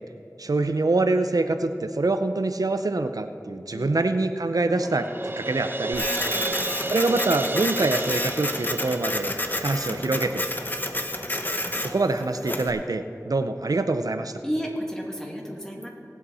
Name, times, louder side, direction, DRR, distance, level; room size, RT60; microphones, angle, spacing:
voice 1, 0.4-6.1 6.9-9.3 9.6-10.4 11.8-14.3, right 2 dB, 80° right, 9 dB, 0.5 m, -25 dB
voice 2, 3.7-4.0 4.6-5.0 6.3-6.6 11.3-12.0 14.4-15.9, equal, 10° left, -1 dB, 2.4 m, -34 dB
Crash cymbal, 4.8-9.7, right 2 dB, 35° right, 0.9 m, -32 dB
Printer, 5.9-12.7, left 1 dB, 30° left, 1.0 m, -30 dB
19.0 x 8.3 x 4.2 m, 2.9 s
wide cardioid pair, 45°, 6 cm